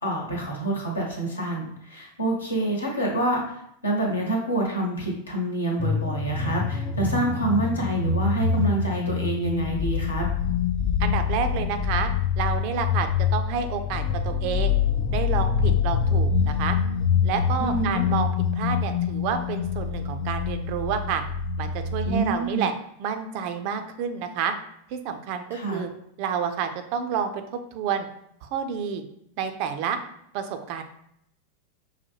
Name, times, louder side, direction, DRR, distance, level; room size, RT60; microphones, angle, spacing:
voice 1, 0.0-10.3 17.6-18.0 22.0-22.7 25.5-25.8, right 2 dB, 75° left, -1 dB, 1.0 m, -27 dB
sound 1, 5.8-22.3, left 7 dB, 30° left, 0.4 m, -25 dB
voice 2, 11.0-14.8 15.1-16.8 17.2-21.2 21.6-22.7 23.0-24.5 24.9-25.9 26.2-28.1 28.4-29.0 29.4-30.0 30.3-30.8, right 7 dB, 45° right, 8 dB, 0.4 m, -29 dB
5.6 x 2.2 x 2.9 m, 0.74 s
figure-of-eight pair, 90°, 0 cm